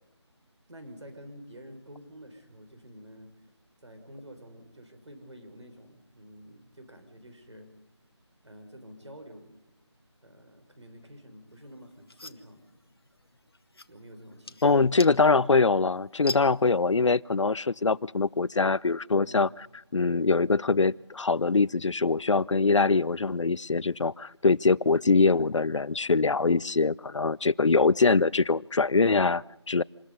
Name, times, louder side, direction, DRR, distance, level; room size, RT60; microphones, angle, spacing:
voice 1, 0.7-3.3 3.8-7.7 8.4-9.5 10.2-12.7 13.9-14.8 19.2-19.5, equal, 70° right, 6 dB, 5.9 m, -49 dB
sound 1, 11.5-17.2, left 2 dB, 55° left, 1.1 m, -44 dB
voice 2, 14.6-19.5 19.9-29.8, left 4 dB, 90° left, 21 dB, 0.6 m, -23 dB
27.0 x 20.5 x 5.5 m, 0.96 s
figure-of-eight pair, 180°, 15 cm